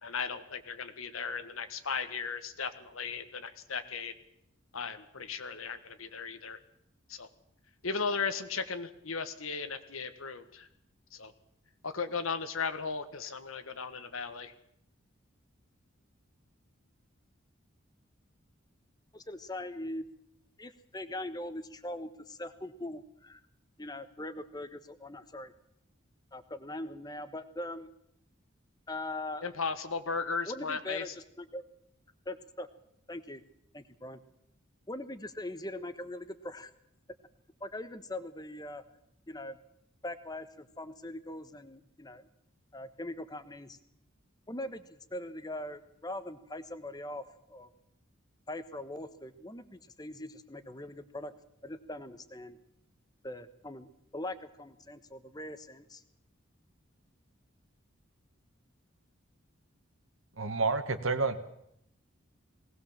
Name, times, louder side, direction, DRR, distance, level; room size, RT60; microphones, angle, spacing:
voice 1, 0.0-4.1 4.7-6.6 7.1-7.3 7.8-10.7 11.1-11.3 11.8-14.5 29.4-31.1, left 5 dB, 90° left, 10 dB, 1.6 m, -36 dB
voice 2, 19.1-20.0 20.6-23.4 23.8-25.5 26.3-27.9 28.9-29.4 30.5-31.6 32.2-32.7 33.1-33.4 33.7-34.2 34.9-36.7 37.6-38.8 39.3-39.6 40.0-42.3 42.7-43.8 44.5-47.2 47.5-47.7 48.5-51.3 51.6-52.6 53.2-56.0, left 1 dB, 20° left, 11 dB, 1.1 m, -41 dB
voice 3, 60.4-61.4, right 3 dB, 80° right, 9 dB, 1.7 m, -29 dB
20.0 x 18.0 x 7.4 m, 0.75 s
head